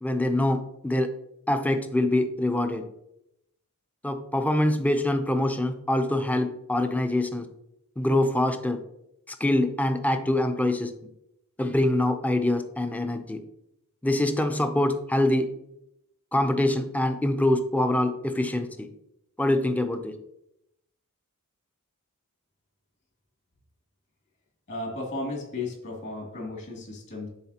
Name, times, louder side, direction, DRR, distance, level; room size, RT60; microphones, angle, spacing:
voice 1, 0.0-1.1 1.5-2.8 4.0-7.5 8.0-8.8 9.3-10.9 11.6-13.4 14.0-15.5 16.3-18.9 19.4-20.2, left 1 dB, 5° left, 7 dB, 0.5 m, -24 dB
voice 2, 24.7-27.3, left 2 dB, 55° left, -2 dB, 2.7 m, -34 dB
10.5 x 4.2 x 2.9 m, 0.81 s
head